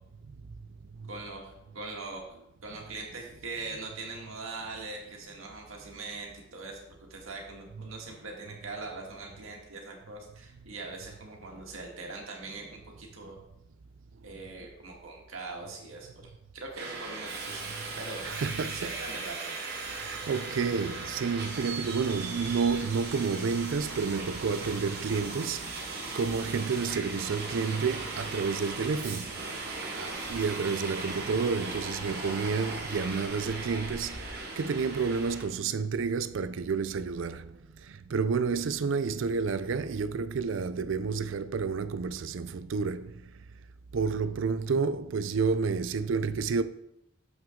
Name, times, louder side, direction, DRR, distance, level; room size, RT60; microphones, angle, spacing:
voice 1, 1.1-2.3 2.6-13.4 14.2-17.7 18.0-18.2 18.7-19.6 29.8-30.2, right 3 dB, 85° right, 1.8 m, -42 dB
Subway metro underground, 16.8-35.5, right 3 dB, 50° right, 1.4 m, -38 dB
voice 2, 18.2-19.0 19.9-25.9 26.1-29.3 30.3-34.2 34.6-37.5 38.1-43.1 43.9-46.6, right 5 dB, 65° right, 0.4 m, -30 dB
7.2 x 5.8 x 3.7 m
head